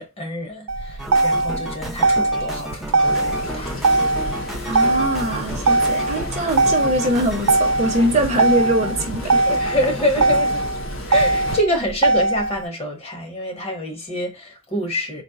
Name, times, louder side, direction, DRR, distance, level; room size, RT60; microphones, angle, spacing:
voice 1, 0.0-3.8 9.5-10.7 11.1-15.2, left 1 dB, 30° left, 1.0 m, -26 dB
Motor vehicle (road), 0.7-12.7, right 2 dB, 75° right, 0.4 m, -21 dB
sound 1, 1.0-10.4, right 1 dB, ahead, 0.5 m, -34 dB
sound 2, 3.0-11.6, left 1 dB, 70° left, 1.9 m, -33 dB
voice 2, 4.7-9.5, right 1 dB, 30° right, 0.7 m, -22 dB
4.1 x 2.1 x 4.5 m
head